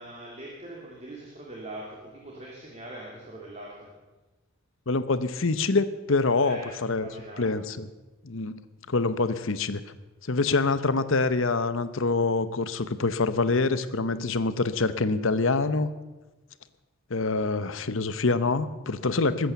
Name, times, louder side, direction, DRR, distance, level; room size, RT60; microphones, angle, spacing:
voice 1, 0.0-3.9 6.4-7.6, right 1 dB, 30° right, -3 dB, 2.7 m, -42 dB
voice 2, 4.9-7.1 7.4-7.9 8.2-8.6 8.9-9.8 10.2-15.9 17.1-19.5, left 3 dB, 65° left, 13 dB, 0.9 m, -25 dB
20.5 x 8.9 x 7.0 m, 1.1 s
head